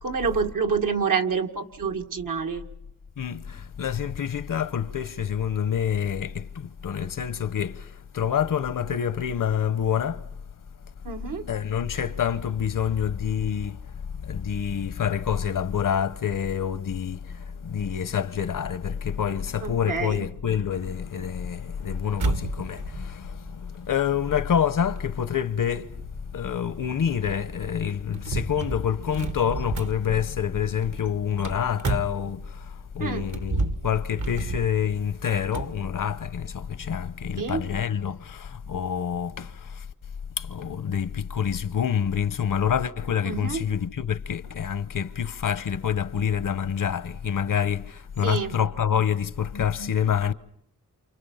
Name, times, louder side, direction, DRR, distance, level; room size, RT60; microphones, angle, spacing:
voice 1, 0.0-2.6 11.0-11.5 19.6-20.3 33.0-33.3 37.4-37.6 43.2-43.6 48.2-48.5, right 5 dB, 85° right, 2.1 m, -27 dB
voice 2, 3.2-10.2 11.5-13.8 14.2-39.8 40.4-50.3, left 8 dB, 80° left, 0.9 m, -27 dB
sound 1, 20.7-32.7 33.2-35.8, right 3 dB, 65° right, 1.3 m, -33 dB
28.5 x 28.5 x 5.7 m
cardioid pair, 70°, 32 cm